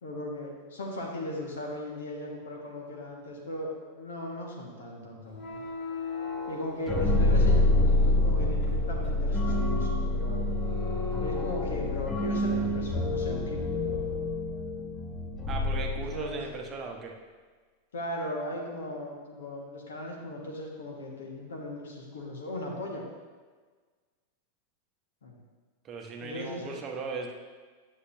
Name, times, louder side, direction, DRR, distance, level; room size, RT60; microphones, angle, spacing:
voice 1, 0.0-5.6 6.5-10.4 11.2-14.1 16.1-16.4 17.9-23.0 25.2-25.4 26.2-26.8, left 1 dB, 65° left, -1 dB, 1.5 m, -37 dB
sound 1, 5.3-12.2, left 5 dB, 40° left, 2.0 m, -39 dB
sound 2, 6.9-16.5, left 1 dB, 15° left, 0.8 m, -27 dB
voice 2, 15.5-17.1 25.8-27.3, right 4 dB, 30° right, 1 dB, 0.9 m, -37 dB
9.8 x 6.3 x 2.6 m, 1.5 s
figure-of-eight pair, 90°, 0 cm